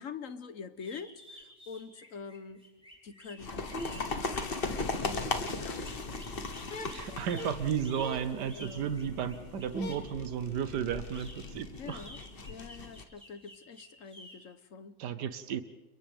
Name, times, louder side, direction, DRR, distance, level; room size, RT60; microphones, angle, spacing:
voice 1, 0.0-2.7 3.0-7.2 8.5-8.9 11.8-12.2 12.5-15.0, left 5 dB, 55° left, 11 dB, 1.3 m, -46 dB
sound 1, 0.8-10.1 10.9-14.3, equal, 5° right, 6.5 m, -52 dB
sound 2, 3.4-13.0, left 3 dB, 35° left, 1.3 m, -38 dB
voice 2, 6.9-12.0 15.0-15.6, right 8 dB, 85° right, 11 dB, 1.5 m, -34 dB
30.0 x 29.5 x 3.6 m, 1.2 s
omnidirectional pair, 1.8 m